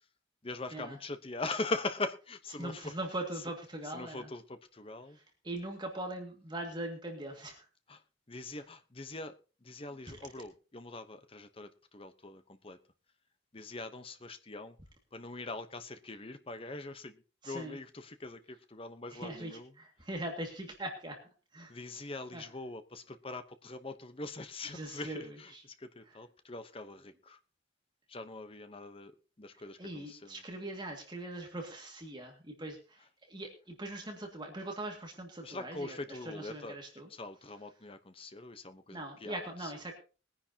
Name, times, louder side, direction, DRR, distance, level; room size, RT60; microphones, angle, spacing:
voice 1, 0.4-2.9 3.9-5.2 7.9-8.0 8.3-12.8 13.5-14.8 15.1-19.7 21.7-25.5 25.8-27.4 28.1-29.1 29.4-30.3 35.4-36.8 37.2-39.4 39.6-39.7, left 2 dB, 30° left, 0.9 m, -42 dB
voice 2, 2.6-4.3 5.1-7.7 10.1-10.2 17.4-17.8 19.1-21.2 21.5-22.0 22.3-22.5 24.7-25.6 26.0-26.2 29.5-37.1 38.9-39.9, right 1 dB, 25° right, 2.1 m, -41 dB
21.0 x 10.0 x 2.9 m
head